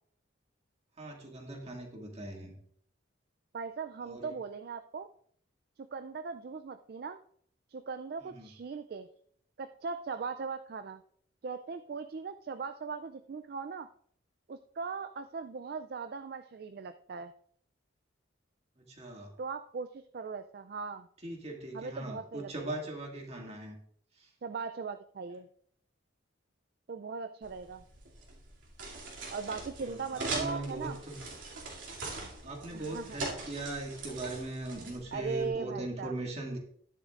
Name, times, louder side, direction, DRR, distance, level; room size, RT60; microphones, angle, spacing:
voice 1, 1.0-2.5 4.0-4.4 8.2-8.5 18.9-19.3 21.2-23.7 29.6-30.9 32.4-36.6, right 2 dB, 30° right, 1 dB, 2.0 m, -40 dB
voice 2, 3.5-5.1 5.8-7.2 7.7-9.1 9.6-11.0 11.4-13.9 14.5-17.3 19.4-21.1 21.7-22.8 24.4-25.5 26.9-27.8 29.3-31.0 32.7-33.2 35.1-36.1, right 5 dB, 50° right, 10 dB, 0.3 m, -39 dB
sound 1, 27.4-35.5, right 3 dB, 75° right, 2.6 m, -42 dB
12.5 x 10.5 x 2.5 m, 0.63 s
head